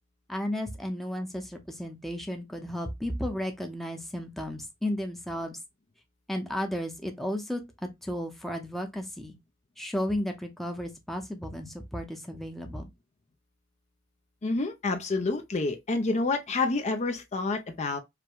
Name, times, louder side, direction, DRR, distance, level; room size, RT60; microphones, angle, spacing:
voice 1, 0.3-5.6 6.3-7.6 8.0-9.4 9.8-12.9, equal, ahead, 0.7 m, -33 dB
voice 2, 14.4-18.0, left 3 dB, 35° left, 0.5 m, -28 dB
5.0 x 2.2 x 4.6 m
head